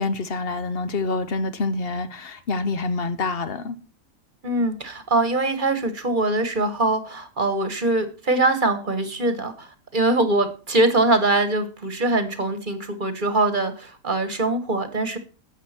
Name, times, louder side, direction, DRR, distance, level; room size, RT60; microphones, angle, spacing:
voice 1, 0.0-3.8, left 3 dB, 45° left, 1.0 m, -26 dB
voice 2, 4.4-15.2, right 2 dB, 35° right, 1.4 m, -23 dB
12.0 x 8.0 x 4.4 m
omnidirectional pair, 1.6 m